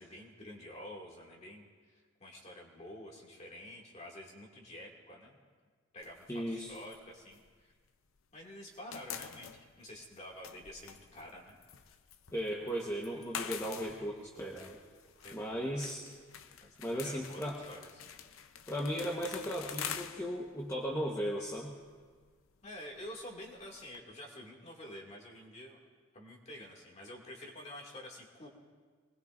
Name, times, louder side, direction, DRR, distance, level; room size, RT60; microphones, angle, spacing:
voice 1, 0.0-1.7 1.9-5.4 5.9-7.7 8.3-11.6 12.6-12.7 15.2-15.9 16.6-18.0 22.6-25.8 26.1-28.5, left 1 dB, 35° left, -1 dB, 2.4 m, -49 dB
sound 1, 6.0-8.3 8.5-24.0, left 8 dB, 85° left, 0.6 m, -47 dB
voice 2, 6.3-6.7 12.3-14.8 15.3-16.0 16.8-17.6 18.7-21.7, equal, 15° left, -3 dB, 1.2 m, -36 dB
25.0 x 20.0 x 2.6 m, 1.6 s
head